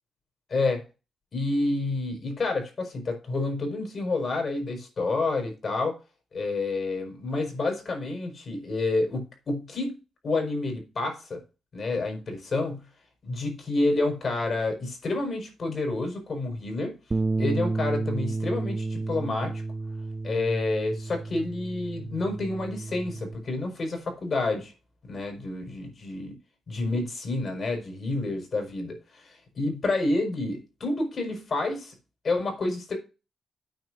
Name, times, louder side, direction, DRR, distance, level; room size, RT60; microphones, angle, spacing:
voice 1, 0.5-0.8 1.3-6.0 6.3-10.0 10.2-11.4 11.7-12.9 13.2-16.9 17.4-19.6 20.2-24.7 25.1-26.3 26.7-31.9 32.2-33.0, left 2 dB, 50° left, 5.6 m, -29 dB
Bass guitar, 17.1-23.4, right 3 dB, 30° right, 0.6 m, -31 dB
9.2 x 5.1 x 7.7 m
cardioid pair, 80°, 0 cm